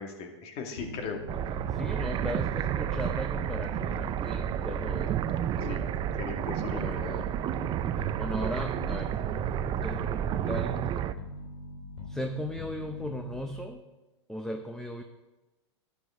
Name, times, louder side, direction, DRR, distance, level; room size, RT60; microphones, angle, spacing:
voice 1, 0.0-1.2 5.6-5.8 6.2-7.2, left 5 dB, 45° left, 3 dB, 2.2 m, -38 dB
sound 1, 0.8-13.7, left 2 dB, 80° left, 3.0 m, -42 dB
voice 2, 1.3-5.3 6.7-7.3 7.9-9.2 9.8-10.9 12.1-13.8 14.3-15.0, left 1 dB, 5° left, 5 dB, 0.8 m, -37 dB
sound 2, 1.3-11.1, right 11 dB, 30° right, 0.5 m, -31 dB
12.5 x 10.5 x 3.8 m, 1.1 s
hypercardioid pair, 105°, 15 cm